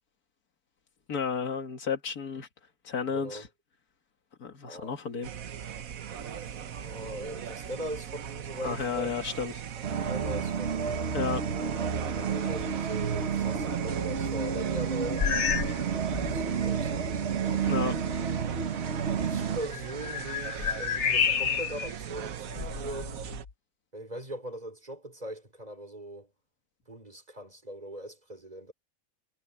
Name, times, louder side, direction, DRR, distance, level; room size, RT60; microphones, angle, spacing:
voice 1, 1.1-2.5 2.8-3.5 4.4-5.3 8.6-9.5 11.1-11.4 17.7-18.0, left 6 dB, 85° left, 2.4 m, -32 dB
voice 2, 3.1-3.5 4.6-5.0 6.2-9.1 9.9-11.2 12.2-15.3 16.1-17.2 19.0-23.2 23.9-26.3 26.9-28.7, right 1 dB, 25° right, 4.2 m, -40 dB
sound 1, 5.2-23.5, right 8 dB, 70° right, 1.4 m, -39 dB
sound 2, 9.8-19.6, right 6 dB, 50° right, 1.4 m, -30 dB
sound 3, 15.2-15.8 16.1-16.5 17.1-17.2 19.6-21.9 22.5-23.5, left 7 dB, 55° left, 1.3 m, -30 dB
omnidirectional pair, 1.5 m